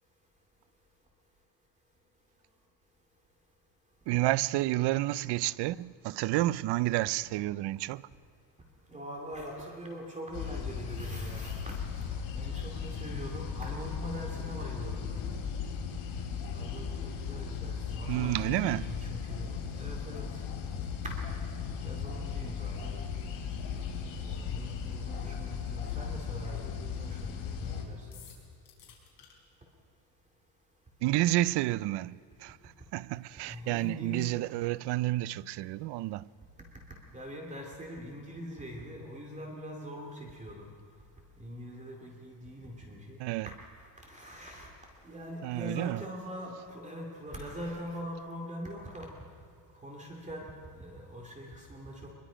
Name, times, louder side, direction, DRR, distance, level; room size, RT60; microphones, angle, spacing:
voice 1, 4.1-8.0 18.1-18.9 31.0-36.3 43.2-43.5 45.4-46.0, right 17 dB, 60° right, 0.5 m, -30 dB
voice 2, 8.9-11.8 12.1-15.2 16.5-20.4 21.0-21.2 21.8-23.0 24.3-28.3 33.5-34.3 37.1-40.7 41.4-43.2 43.5-44.7 45.0-49.1 49.8-52.1, equal, 15° right, 2.4 m, -42 dB
sound 1, 10.3-27.8, left 6 dB, 75° left, 3.6 m, -37 dB
sound 2, 28.1-29.3, left 9 dB, 50° left, 4.6 m, -53 dB
24.0 x 22.0 x 5.0 m
cardioid pair, 160°, 47 cm